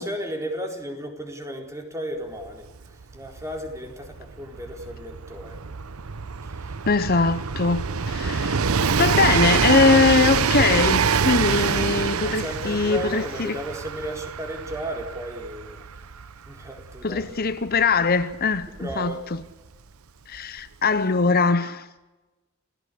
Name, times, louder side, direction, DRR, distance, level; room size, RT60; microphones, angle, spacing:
voice 1, 0.0-5.6 6.4-6.8 12.2-15.9 16.5-17.3 18.8-19.2, equal, 15° right, 4.1 m, -35 dB
Train, 2.5-2.6 2.7-19.4 20.3-20.4, right 6 dB, 85° right, 0.8 m, -25 dB
voice 2, 6.9-8.6 9.0-13.6 17.0-19.4 20.3-21.9, left 4 dB, 45° left, 0.9 m, -22 dB
27.5 x 17.5 x 8.5 m
head